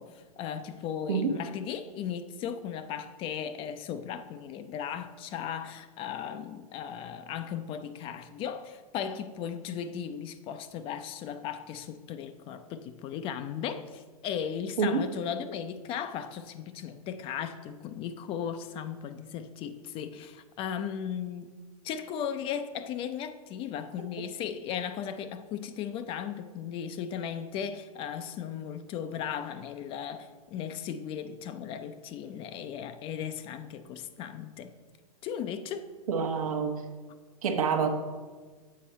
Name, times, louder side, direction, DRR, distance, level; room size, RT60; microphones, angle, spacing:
voice 1, 0.0-21.6 21.8-34.7 35.2-35.9, left 8 dB, 30° left, 10 dB, 0.4 m, -36 dB
voice 2, 36.1-36.7 37.4-37.9, right 5 dB, 70° right, 5 dB, 0.9 m, -27 dB
7.4 x 4.5 x 4.2 m, 1.4 s
hypercardioid pair, 105°, 19 cm